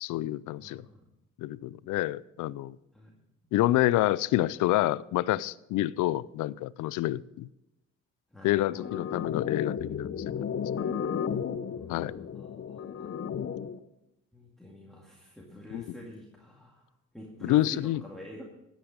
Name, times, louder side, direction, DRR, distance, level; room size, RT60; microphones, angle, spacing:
voice 1, 0.0-0.8 1.4-2.8 3.5-7.5 8.4-10.1 10.7-10.9 11.9-12.1 15.7-15.9 17.4-18.0, left 15 dB, 85° left, 21 dB, 0.5 m, -28 dB
voice 2, 0.6-1.0 2.9-3.1 8.3-9.3 11.7-13.2 14.3-16.8 17.1-18.4, equal, ahead, -3 dB, 2.3 m, -47 dB
sound 1, 8.8-13.8, left 7 dB, 50° left, 0.8 m, -33 dB
13.5 x 9.0 x 5.2 m, 0.89 s
cardioid pair, 90°, 30 cm